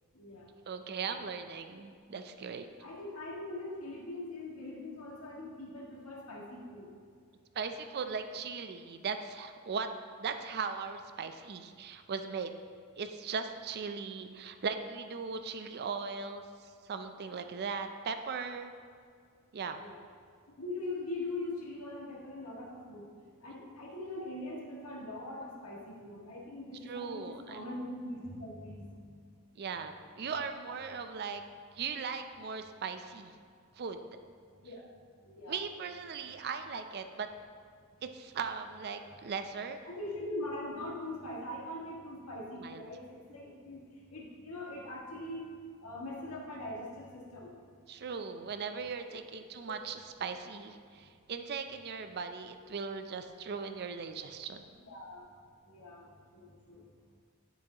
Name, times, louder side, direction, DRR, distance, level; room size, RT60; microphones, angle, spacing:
voice 1, 0.1-0.5 1.0-1.2 2.8-6.9 19.7-20.0 20.5-23.1 23.4-29.3 34.6-34.9 35.2-35.6 39.9-43.8 44.1-45.5 45.8-47.5 49.8-49.9 51.0-51.1 54.8-55.2 55.7-56.8, left 2 dB, 85° left, -3 dB, 1.8 m, -42 dB
voice 2, 0.7-2.7 7.5-9.9 10.2-12.5 13.0-18.7 19.5-19.8 26.9-27.6 29.6-31.4 31.8-33.4 33.8-34.0 35.5-37.3 38.0-39.8 42.6-42.8 47.9-54.6, right 5 dB, 50° right, 8 dB, 0.4 m, -38 dB
9.1 x 7.0 x 2.9 m, 2.1 s
head